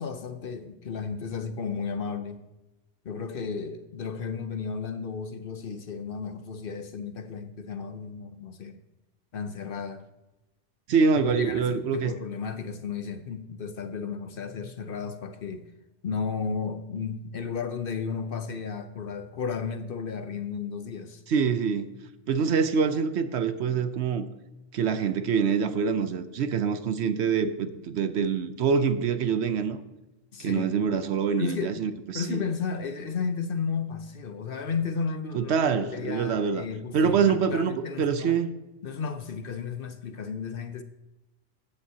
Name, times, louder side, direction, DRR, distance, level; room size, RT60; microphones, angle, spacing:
voice 1, 0.0-2.4 3.0-8.8 9.3-10.1 11.1-15.6 16.0-21.2 30.3-30.7 31.4-31.8 32.1-38.4 38.8-40.8, left 5 dB, 55° left, 0.8 m, -33 dB
voice 2, 10.9-12.1 21.3-22.0 22.3-24.3 24.7-29.8 30.4-32.4 35.3-36.7 36.9-38.5, right 6 dB, 65° right, 0.9 m, -25 dB
14.5 x 8.8 x 2.8 m
omnidirectional pair, 1.3 m